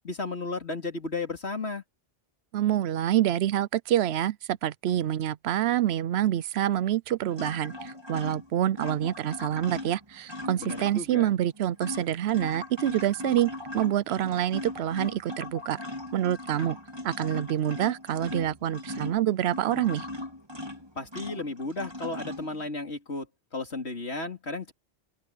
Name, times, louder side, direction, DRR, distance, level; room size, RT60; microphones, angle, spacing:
voice 1, 0.0-1.8 10.6-11.3 21.0-23.3 23.5-24.7, left 3 dB, 85° left, 3.8 m, -34 dB
voice 2, 2.5-15.8 16.1-16.8 17.0-20.1, right 11 dB, 80° right, 0.8 m, -27 dB
sound 1, 7.3-11.2 11.5-22.7, left 1 dB, 25° right, 2.9 m, -39 dB
open air
omnidirectional pair, 1.1 m